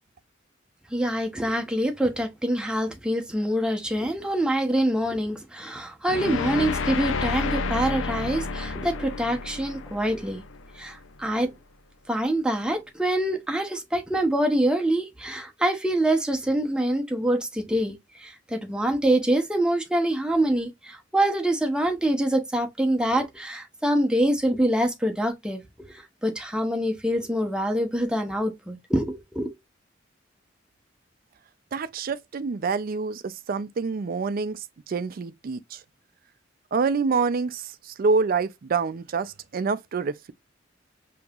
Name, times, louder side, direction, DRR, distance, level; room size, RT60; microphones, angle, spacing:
voice 1, 0.9-10.4 10.8-11.5 12.1-25.6 25.9-29.5, right 1 dB, 5° right, 0.7 m, -25 dB
sound 1, 6.1-11.2, left 4 dB, 85° left, 0.5 m, -30 dB
voice 2, 31.7-35.8 36.7-40.3, right 4 dB, 50° right, 0.4 m, -27 dB
5.3 x 2.8 x 2.3 m
head